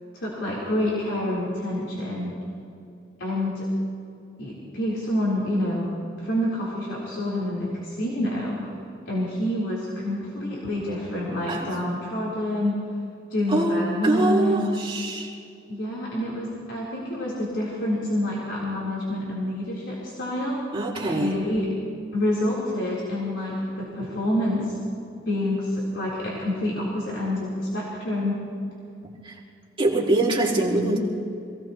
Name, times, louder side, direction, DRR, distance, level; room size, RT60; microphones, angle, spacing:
voice 1, 0.1-2.3 3.2-3.6 4.4-5.9 6.2-8.6 9.1-12.8 13.3-14.8 15.7-20.6 21.0-21.7 22.1-24.8 25.3-28.4, left 1 dB, 80° left, -7 dB, 3.9 m, -27 dB
voice 2, 13.5-15.3 20.7-21.4 29.2-29.3 29.8-31.0, right 2 dB, 30° right, -4 dB, 2.2 m, -24 dB
26.5 x 17.5 x 3.1 m, 2.5 s
head